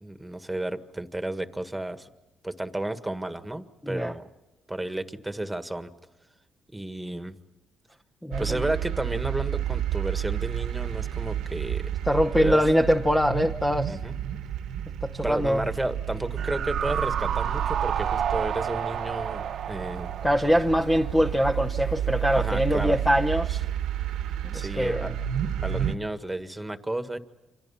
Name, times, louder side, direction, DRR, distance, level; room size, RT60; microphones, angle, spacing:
voice 1, 0.0-2.1 2.4-4.3 4.7-5.9 6.7-7.3 8.4-11.9 12.3-12.6 13.9-14.2 15.2-20.2 22.3-23.0 24.5-25.1 25.6-27.2, right 1 dB, 10° right, 1.7 m, -32 dB
voice 2, 3.8-4.1 8.2-8.6 12.1-14.0 15.0-15.7 20.2-23.7 24.5-25.1, equal, 10° left, 0.9 m, -23 dB
sound 1, 8.3-25.9, right 10 dB, 90° right, 1.4 m, -31 dB
sound 2, 16.4-21.6 21.9-22.0, right 9 dB, 65° right, 1.1 m, -30 dB
29.0 x 26.5 x 5.7 m
cardioid pair, 90°, 0 cm